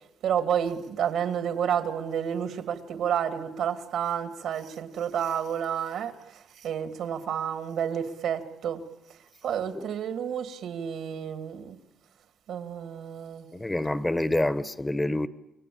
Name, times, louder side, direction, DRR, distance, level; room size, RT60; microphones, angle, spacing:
voice 1, 0.2-8.8 9.4-11.8 12.5-13.5, right 8 dB, 75° right, 9 dB, 2.4 m, -30 dB
voice 2, 13.5-15.3, left 1 dB, 15° left, 15 dB, 1.0 m, -27 dB
28.5 x 22.5 x 8.7 m, 0.89 s
cardioid pair, 90°, 0 cm